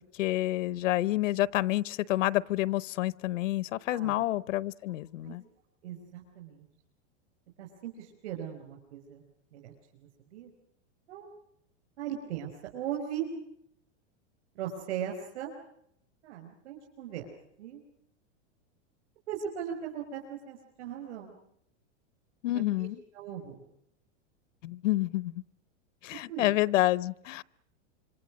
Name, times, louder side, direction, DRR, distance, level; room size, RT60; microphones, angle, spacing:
voice 1, 0.2-5.4 22.4-23.0 24.6-25.4 26.0-27.4, left 16 dB, 90° left, 21 dB, 0.9 m, -28 dB
voice 2, 3.9-4.2 5.2-5.4 5.8-6.7 7.6-9.2 9.5-10.5 11.1-11.3 12.0-13.3 14.6-15.5 16.2-17.3 17.6-17.8 19.3-21.3 22.5-23.6 26.3-26.5, right 9 dB, 65° right, 2 dB, 5.3 m, -39 dB
26.5 x 26.0 x 6.3 m, 0.74 s
supercardioid pair, 175°, 37 cm